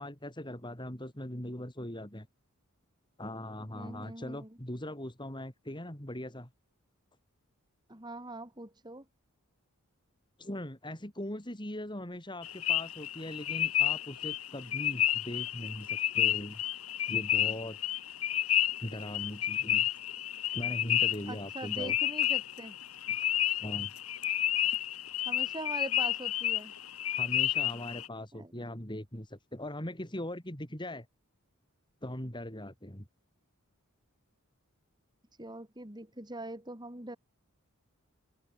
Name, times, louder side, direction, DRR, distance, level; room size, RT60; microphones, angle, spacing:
voice 1, 0.0-2.3 3.2-6.5 10.4-16.6 17.1-17.8 18.8-19.9 20.5-22.0 23.1-23.2 23.6-23.9 27.2-31.1 32.0-33.1, left 1 dB, 20° left, 3.9 m, -40 dB
voice 2, 3.7-4.5 7.9-9.0 21.3-22.8 25.2-26.7 28.3-28.5 35.4-37.2, right 2 dB, 20° right, 3.5 m, -42 dB
Spring Peepers - field recording, 12.4-28.1, left 12 dB, 85° left, 5.0 m, -31 dB
head